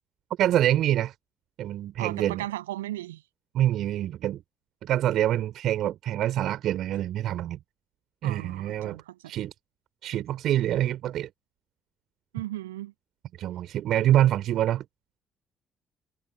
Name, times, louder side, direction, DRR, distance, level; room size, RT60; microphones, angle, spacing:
voice 1, 0.4-1.1 1.6-2.4 3.5-4.4 4.8-7.6 8.2-9.0 9.3-9.5 10.0-11.3 13.4-14.8, right 12 dB, 65° right, 4.5 m, -25 dB
voice 2, 2.0-3.2 8.2-9.2 12.3-12.9, right 15 dB, 85° right, 7.8 m, -36 dB
hypercardioid pair, 50°, 0 cm